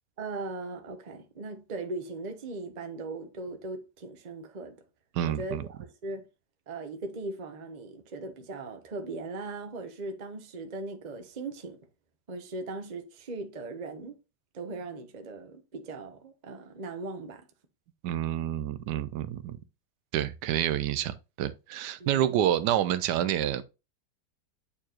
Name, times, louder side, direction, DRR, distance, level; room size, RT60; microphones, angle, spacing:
voice 1, 0.2-4.8 5.3-6.2 6.7-11.8 12.3-14.2 14.5-17.4 22.0-22.3, right 3 dB, 30° right, 0.9 m, -39 dB
voice 2, 5.1-5.6 18.0-19.6 20.1-23.6, right 11 dB, 85° right, 1.2 m, -28 dB
8.5 x 4.6 x 2.9 m
omnidirectional pair, 1.8 m